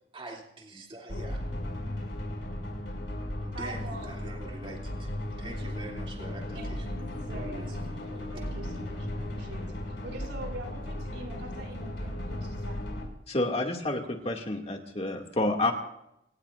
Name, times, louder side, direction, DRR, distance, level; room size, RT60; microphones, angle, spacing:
voice 1, 0.1-1.4 3.4-5.1 5.4-6.9 7.1-8.0, right 2 dB, 30° right, -1 dB, 2.9 m, -44 dB
sound 1, 1.1-13.1, left 1 dB, 65° left, 6.5 m, -36 dB
voice 2, 3.5-4.1 6.5-7.0 7.2-12.9, right 2 dB, 70° right, 3 dB, 6.2 m, -44 dB
voice 3, 13.3-15.7, left 2 dB, 35° left, 2 dB, 2.4 m, -29 dB
26.5 x 19.5 x 2.6 m, 0.81 s
head